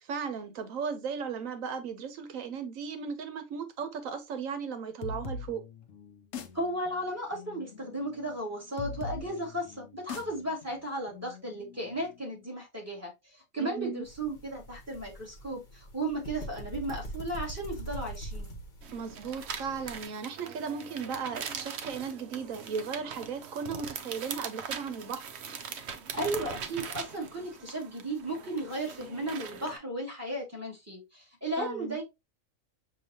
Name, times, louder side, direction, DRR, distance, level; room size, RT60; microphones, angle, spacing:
voice 1, 0.0-5.6 13.6-14.1 18.9-25.3 31.6-32.0, right 6 dB, 80° right, 1.2 m, -36 dB
sound 1, 5.0-12.4, left 3 dB, 70° left, 1.0 m, -43 dB
voice 2, 6.5-18.5 26.1-32.0, right 1 dB, 10° right, 2.1 m, -35 dB
sound 2, 14.0-20.0, right 1 dB, 40° left, 1.2 m, -43 dB
sound 3, 18.8-29.8, right 6 dB, 60° right, 0.9 m, -41 dB
6.6 x 2.8 x 2.8 m
omnidirectional pair, 1.4 m